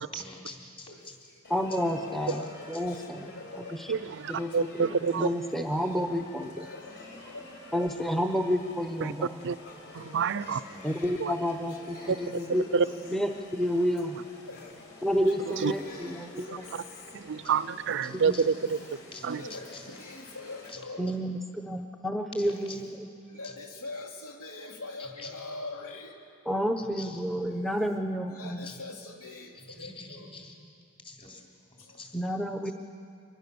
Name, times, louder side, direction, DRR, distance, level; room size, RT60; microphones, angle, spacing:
voice 1, 0.1-0.9 10.7-11.0 18.0-18.4 19.1-19.2 22.7-22.8 25.2-25.3 27.0-27.2 28.6-28.8 29.7-30.5 31.0-31.4 32.0-32.1, left 3 dB, 25° left, -1 dB, 3.6 m, -45 dB
voice 2, 0.9-1.4 1.8-3.8 5.8-6.1 6.5-8.3 10.4-11.2 11.7-12.7 14.5-14.9 15.2-17.0 18.6-18.7 19.3-21.2 22.4-22.7 23.3-26.2 27.4-27.5 28.3-30.4 31.8-32.0, left 3 dB, 80° left, 1 dB, 3.1 m, -44 dB
sound 1, 1.4-20.7, left 2 dB, 55° left, 5.0 m, -49 dB
voice 3, 1.5-3.3 3.7-3.9 4.3-4.7 5.1-6.6 7.7-9.4 10.8-12.6 13.1-14.2 15.0-16.5 18.1-18.4 21.0-23.1 26.5-28.7 32.1-32.7, equal, ahead, 5 dB, 0.8 m, -30 dB
voice 4, 3.9-5.3 9.0-9.1 9.4-9.6 9.9-10.6 11.2-11.3 12.1-12.9 15.2-15.3 15.6-15.7 17.1-18.8 19.2-19.4, right 6 dB, 60° right, 16 dB, 0.5 m, -28 dB
25.0 x 20.0 x 6.9 m, 2.4 s
head